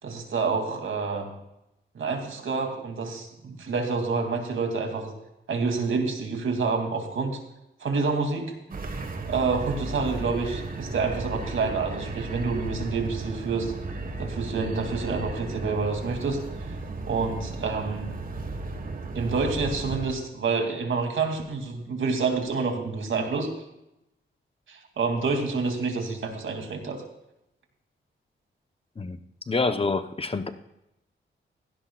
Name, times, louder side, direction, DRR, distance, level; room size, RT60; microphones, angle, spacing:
voice 1, 0.0-1.3 1.9-5.1 5.5-7.4 7.8-8.5 9.3-13.7 14.2-16.4 17.1-18.1 19.1-23.5 24.7-27.0, right 4 dB, 75° right, 3 dB, 2.5 m, -28 dB
sound 1, 8.7-20.1, right 3 dB, 45° right, 1.4 m, -35 dB
voice 2, 29.5-30.5, left 3 dB, 30° left, 9 dB, 0.8 m, -26 dB
16.5 x 16.0 x 2.3 m, 0.86 s
cardioid pair, 95°, 21 cm